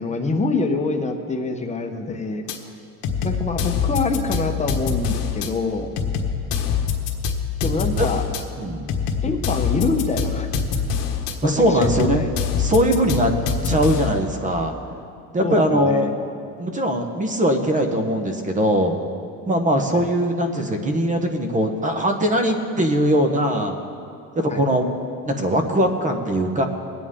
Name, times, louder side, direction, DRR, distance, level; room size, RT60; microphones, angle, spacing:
voice 1, 0.0-2.4 3.2-5.9 7.6-8.2 9.2-10.5 11.4-12.2 15.4-16.1 19.9-20.0 24.5-24.6, left 3 dB, 20° left, 4 dB, 1.0 m, -25 dB
sound 1, 2.5-2.6 3.0-5.5 6.0-8.4 8.9-11.3 11.8-14.2, left 6 dB, 80° left, 1.4 m, -24 dB
voice 2, 8.6-8.9 11.4-12.2 12.6-13.3 13.6-14.7 15.3-16.1 16.6-19.0 19.5-23.7 24.3-24.9 25.2-26.6, equal, 20° right, 5 dB, 1.0 m, -21 dB
21.5 x 9.0 x 3.7 m, 2.5 s
cardioid pair, 145°, 36 cm